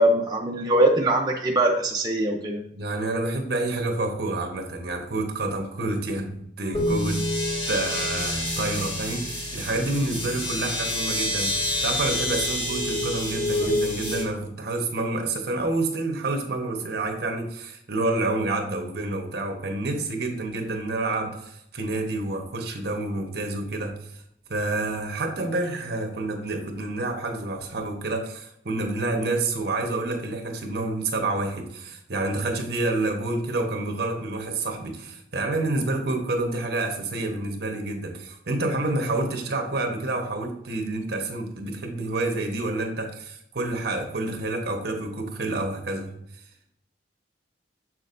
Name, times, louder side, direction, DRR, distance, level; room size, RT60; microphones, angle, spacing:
voice 1, 0.0-2.6, right 1 dB, 20° right, -1 dB, 0.5 m, -22 dB
voice 2, 2.7-7.2 7.7-11.6 11.8-24.1 24.5-46.1, right 2 dB, 55° right, 4 dB, 1.1 m, -28 dB
sound 1, 6.7-14.2, left 1 dB, 30° left, 2.2 m, -27 dB
7.3 x 6.2 x 2.6 m, 0.74 s
head